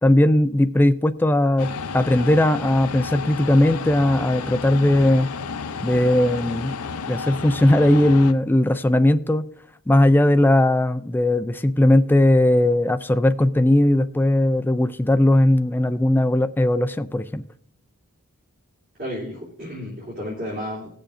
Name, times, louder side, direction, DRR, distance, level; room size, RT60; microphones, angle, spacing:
voice 1, 0.0-1.7 1.9-5.3 5.8-6.7 7.1-9.4 9.9-17.4, left 1 dB, 10° left, 0.3 m, -18 dB
sound 1, 1.6-8.3, left 5 dB, 80° left, 0.6 m, -31 dB
voice 2, 19.0-20.9, equal, 45° right, 3.1 m, -32 dB
19.5 x 6.9 x 2.5 m
head